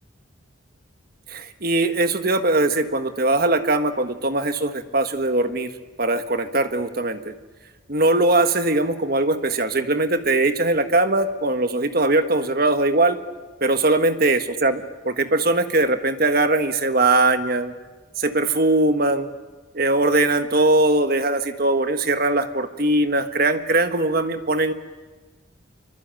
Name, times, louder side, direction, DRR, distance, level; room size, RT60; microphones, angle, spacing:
voice 1, 1.3-5.7 6.0-7.3 7.9-13.2 13.6-17.7 18.2-19.3 19.7-24.7, right 2 dB, 50° right, 8 dB, 1.5 m, -21 dB
26.0 x 24.0 x 9.1 m, 1.3 s
head